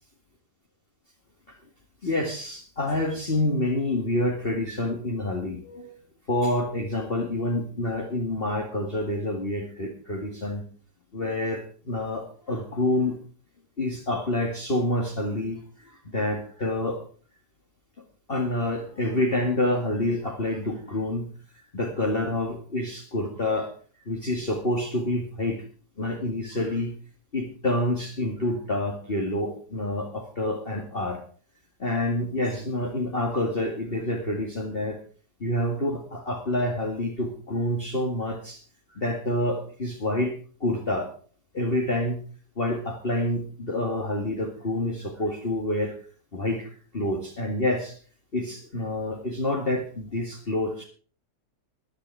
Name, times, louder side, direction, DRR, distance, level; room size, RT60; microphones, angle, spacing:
voice 1, 2.0-5.9 6.3-10.6 11.1-13.2 13.8-17.0 18.3-21.3 21.7-23.7 24.1-25.6 26.0-27.0 27.3-31.2 31.8-35.0 35.4-38.6 38.9-41.1 41.5-42.2 42.6-46.0 46.3-48.0 48.3-50.8, left 1 dB, 35° left, -1 dB, 2.2 m, -28 dB
14.5 x 11.0 x 4.7 m, 0.42 s
omnidirectional pair, 1.9 m